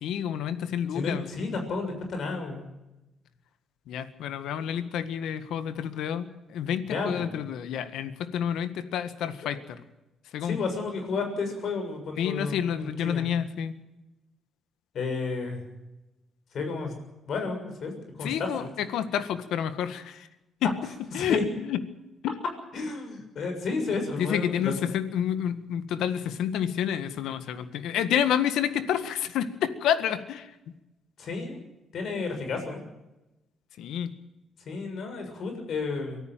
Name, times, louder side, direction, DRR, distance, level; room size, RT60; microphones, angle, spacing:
voice 1, 0.0-1.3 3.9-9.8 10.3-10.6 12.2-13.8 18.2-20.3 20.6-20.7 21.1-21.8 22.2-22.4 24.2-30.5 33.8-34.2, left 9 dB, 85° left, 11 dB, 1.7 m, -29 dB
voice 2, 0.9-2.7 6.9-7.4 10.4-13.3 14.9-15.6 16.5-16.9 17.3-17.9 18.2-18.7 21.1-21.4 22.7-25.0 31.2-31.6 31.9-32.8 34.7-36.2, left 4 dB, 60° left, 5 dB, 7.0 m, -32 dB
24.0 x 14.0 x 9.2 m, 0.98 s
cardioid pair, 90°, 0 cm